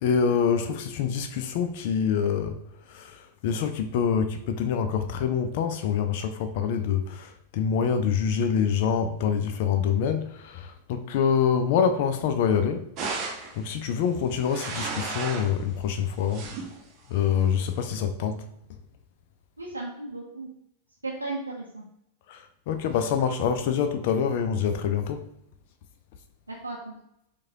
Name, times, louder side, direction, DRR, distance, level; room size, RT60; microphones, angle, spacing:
voice 1, 0.0-2.6 2.9-12.9 13.6-16.6 17.1-18.4 22.3-25.2, left 7 dB, 50° left, 0.4 m, -26 dB
sound 1, 13.0-13.6 14.3-15.6 16.0-16.8 17.5-17.9, right 4 dB, 35° right, 0.7 m, -34 dB
voice 2, 19.6-20.5 21.0-21.8 26.5-26.9, right 2 dB, 80° right, 0.6 m, -35 dB
4.7 x 2.3 x 2.7 m
figure-of-eight pair, 90°, 0 cm